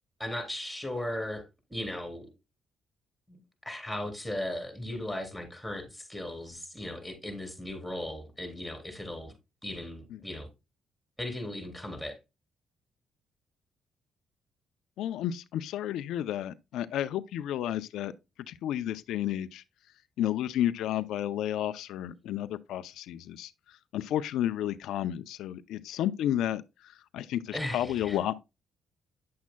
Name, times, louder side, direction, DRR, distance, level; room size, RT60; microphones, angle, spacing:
voice 1, 0.2-1.4 1.7-2.3 3.3-9.3 9.6-10.5 11.2-12.2 27.5-28.2, left 1 dB, ahead, 3.6 m, -37 dB
voice 2, 15.0-18.1 18.5-19.6 20.2-28.3, left 11 dB, 85° left, 0.4 m, -32 dB
9.4 x 7.3 x 2.2 m
cardioid pair, 90°, 0 cm